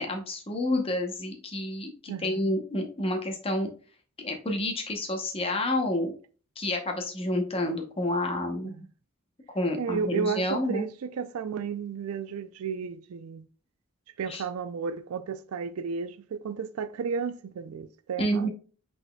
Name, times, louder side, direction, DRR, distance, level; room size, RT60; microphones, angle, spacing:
voice 1, 0.0-3.7 4.2-6.1 6.6-8.7 9.5-10.9 14.3-14.4 18.2-18.5, left 1 dB, 25° left, 0.8 m, -29 dB
voice 2, 2.1-2.5 8.6-8.9 9.8-13.5 14.2-18.5, right 6 dB, 90° right, 0.4 m, -33 dB
5.6 x 4.0 x 2.2 m
head